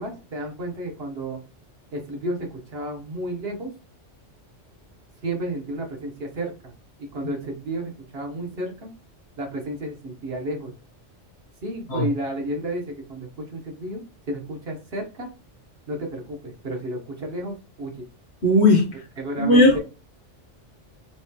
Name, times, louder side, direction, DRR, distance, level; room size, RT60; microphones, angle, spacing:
voice 1, 0.0-1.4 1.9-3.7 5.2-6.7 7.0-8.9 9.4-10.7 11.6-15.3 15.9-18.1 19.2-19.8, right 1 dB, 55° right, 2 dB, 1.3 m, -32 dB
voice 2, 18.4-18.8 19.4-19.8, left 1 dB, 65° left, -2 dB, 1.6 m, -16 dB
6.1 x 3.1 x 2.2 m, 0.30 s
omnidirectional pair, 1.2 m